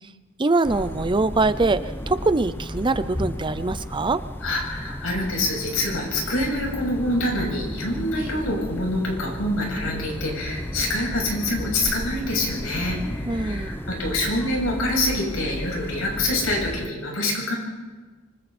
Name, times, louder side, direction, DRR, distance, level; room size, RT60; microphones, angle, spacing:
voice 1, 0.4-4.2 13.3-13.8, right 3 dB, 20° right, 13 dB, 0.5 m, -23 dB
sound 1, 0.6-16.9, equal, 10° left, 0.8 m, -34 dB
voice 2, 4.4-17.5, left 1 dB, 70° left, -1 dB, 7.8 m, -26 dB
26.5 x 25.0 x 4.3 m, 1.3 s
head